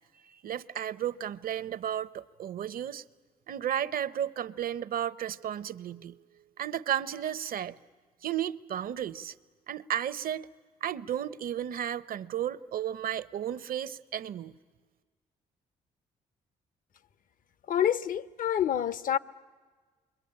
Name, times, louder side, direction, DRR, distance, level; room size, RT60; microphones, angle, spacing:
voice 1, 0.1-3.0 3.5-7.8 8.2-9.3 9.7-10.5 10.8-14.5, right 10 dB, 60° right, 0.8 m, -33 dB
voice 2, 17.7-19.2, left 10 dB, 55° left, 0.7 m, -27 dB
28.0 x 23.0 x 8.8 m
supercardioid pair, 65°, 16 cm